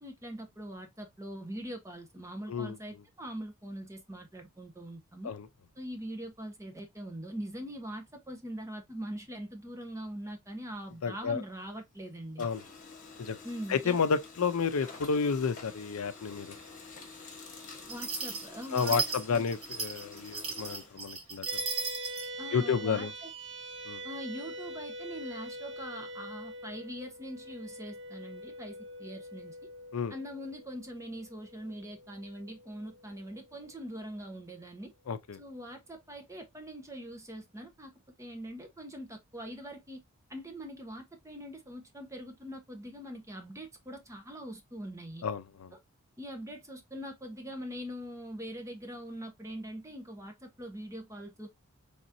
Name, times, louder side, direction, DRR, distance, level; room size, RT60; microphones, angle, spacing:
voice 1, 0.0-5.3 5.8-12.5 13.4-14.0 17.9-19.4 22.4-23.3 24.0-29.6 30.1-34.9 35.4-37.9 38.2-40.0 40.3-45.2 46.2-51.5, equal, 15° right, 1.0 m, -42 dB
Printer, 10.7-12.0 12.3-21.8, left 4 dB, 35° left, 1.4 m, -49 dB
voice 2, 11.0-11.4 12.4-12.6 13.2-13.4 13.7-16.5 18.7-21.6 22.5-23.1 23.9-24.0 29.9-30.2 35.1-35.4 45.2-45.7, left 5 dB, 80° left, 0.5 m, -31 dB
sound 1, 17.9-22.3, right 4 dB, 80° right, 1.8 m, -36 dB
sound 2, 21.5-34.1, right 1 dB, 55° right, 1.2 m, -44 dB
4.1 x 3.6 x 2.6 m
head